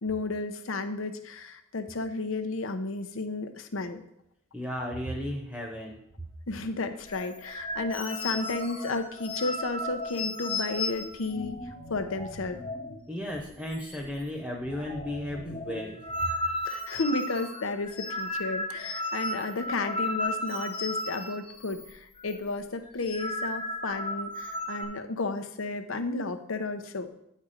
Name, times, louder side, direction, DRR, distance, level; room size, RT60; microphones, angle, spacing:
voice 1, 0.0-4.0 6.5-12.6 16.7-27.1, left 3 dB, 80° left, 8 dB, 0.8 m, -33 dB
voice 2, 4.5-6.0 13.1-16.0, left 1 dB, 5° right, 0 dB, 0.8 m, -34 dB
sound 1, 7.1-13.0 13.3-13.4 13.7-14.3 14.6-21.9 22.2-22.4 22.9-24.8, left 1 dB, 25° left, 0.9 m, -35 dB
9.7 x 4.3 x 5.0 m, 0.79 s
head